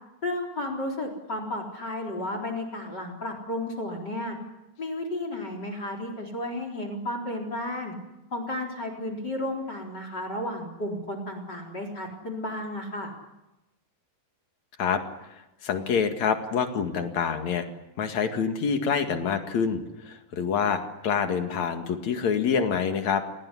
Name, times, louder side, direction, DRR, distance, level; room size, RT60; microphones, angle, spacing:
voice 1, 0.2-4.4 4.8-7.9 8.3-13.1, left 1 dB, 25° left, 5 dB, 4.1 m, -33 dB
voice 2, 15.6-17.6 18.0-23.2, left 6 dB, 50° left, 6 dB, 2.8 m, -26 dB
29.0 x 19.0 x 9.9 m, 0.96 s
omnidirectional pair, 4.9 m